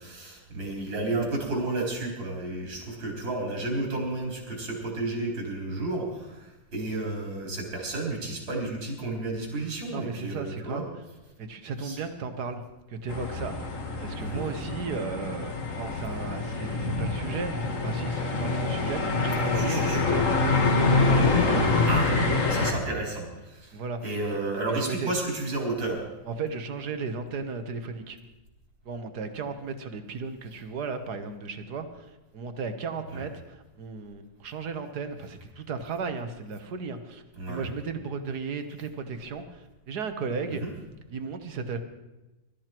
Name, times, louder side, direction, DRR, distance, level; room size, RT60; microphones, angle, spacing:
voice 1, 0.0-10.8 11.8-12.0 14.2-14.4 19.6-20.2 21.9-22.1 22.5-26.0 33.1-33.3 37.4-37.7 40.5-40.7, right 2 dB, 75° right, -1 dB, 4.7 m, -32 dB
voice 2, 9.9-10.9 11.4-12.6 12.9-20.3 20.8-21.8 23.7-24.0 24.7-25.1 26.3-28.2 28.9-40.6 41.1-41.8, right 4 dB, 60° right, 8 dB, 1.7 m, -35 dB
sound 1, 13.1-22.7, left 3 dB, 45° left, 1.9 m, -26 dB
22.0 x 13.0 x 4.5 m, 1.1 s
omnidirectional pair, 2.1 m